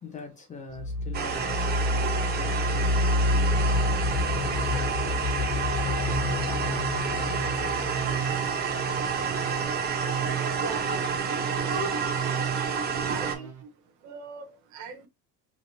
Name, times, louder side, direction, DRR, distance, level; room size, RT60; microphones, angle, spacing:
voice 1, 0.0-7.5, left 4 dB, 20° left, 0.9 m, -43 dB
sound 1, 0.7-9.4, left 2 dB, 65° left, 1.2 m, -28 dB
sound 2, 1.1-13.3, right 6 dB, 30° right, 0.6 m, -29 dB
sound 3, 6.1-13.6, right 8 dB, 90° right, 1.4 m, -35 dB
voice 2, 11.6-12.0 13.1-13.5 14.0-15.1, right 4 dB, 60° right, 0.8 m, -37 dB
3.2 x 2.7 x 2.6 m
cardioid pair, 145°, 33 cm